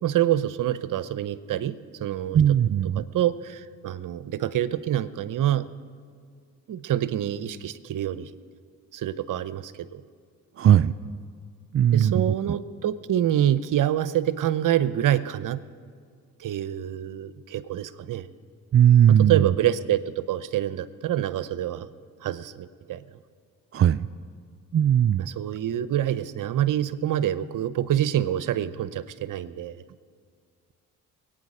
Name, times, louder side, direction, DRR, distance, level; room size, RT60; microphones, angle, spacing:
voice 1, 0.0-2.6 2.8-5.7 6.7-8.3 8.9-10.0 10.7-11.1 11.9-15.6 16.4-18.3 19.1-21.9 22.2-23.0 25.2-29.8, right 11 dB, 55° right, 15 dB, 0.8 m, -26 dB
voice 2, 2.3-3.0 10.6-10.9 11.7-12.2 18.7-19.5 23.7-24.1 24.7-25.3, right 10 dB, 35° right, 12 dB, 0.5 m, -18 dB
23.0 x 9.1 x 5.0 m, 2.1 s
hypercardioid pair, 50°, 39 cm